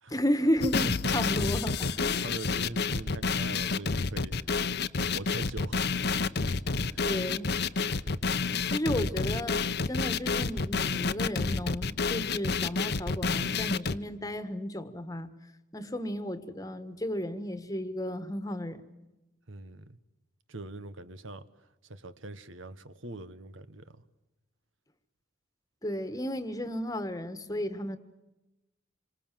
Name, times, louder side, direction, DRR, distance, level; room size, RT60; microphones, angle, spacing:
voice 1, 0.1-2.2 6.4-6.6 7.0-7.5 8.7-15.3 15.7-18.8 25.8-28.0, equal, 15° left, 1.5 m, -33 dB
sound 1, 0.6-14.0, left 4 dB, 50° left, 0.9 m, -29 dB
voice 2, 0.8-1.1 1.8-5.9 6.9-7.1 19.5-19.9 20.5-21.5 21.8-24.0, right 2 dB, 75° right, 1.5 m, -42 dB
27.5 x 25.0 x 7.6 m
head